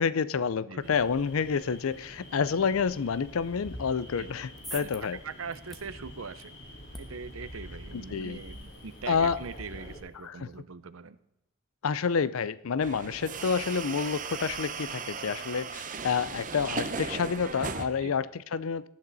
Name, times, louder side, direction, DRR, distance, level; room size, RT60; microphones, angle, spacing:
voice 1, 0.0-5.2 7.9-8.4 9.1-9.4 10.2-10.5 11.8-18.9, left 6 dB, 85° left, 18 dB, 0.5 m, -29 dB
sound 1, 0.8-10.0, equal, 60° left, 3.9 m, -46 dB
sound 2, 4.2-10.6, equal, ahead, 1.3 m, -51 dB
voice 2, 4.7-6.5 7.0-11.2 18.0-18.1, right 5 dB, 75° right, 14 dB, 0.7 m, -41 dB
sound 3, 12.8-17.9, right 5 dB, 40° right, 0.9 m, -36 dB
17.5 x 11.5 x 4.1 m, 0.89 s
head